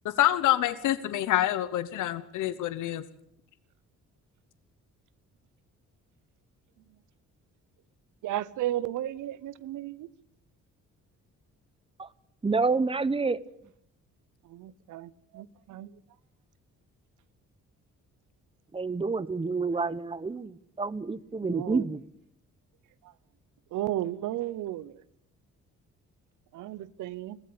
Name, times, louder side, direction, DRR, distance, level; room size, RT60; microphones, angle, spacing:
voice 1, 0.2-3.0, left 13 dB, 80° left, 1.1 m, -26 dB
voice 2, 8.2-10.1 14.4-15.9 21.4-21.8 23.0-23.1 23.7-25.0 26.5-27.4, right 13 dB, 85° right, 1.0 m, -34 dB
voice 3, 12.4-13.4 18.7-22.0, right 4 dB, 20° right, 1.0 m, -28 dB
22.0 x 15.5 x 8.7 m
cardioid pair, 90°, 30 cm